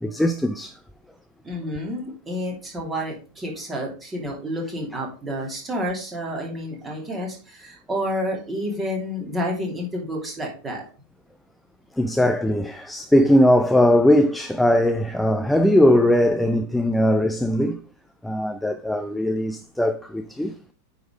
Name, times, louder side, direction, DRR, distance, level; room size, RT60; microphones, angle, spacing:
voice 1, 0.0-0.8 12.0-17.8 18.2-20.5, left 1 dB, 5° left, 0.5 m, -19 dB
voice 2, 1.4-10.8, equal, 15° right, 2.9 m, -29 dB
9.1 x 4.3 x 5.0 m
figure-of-eight pair, 90°, 0 cm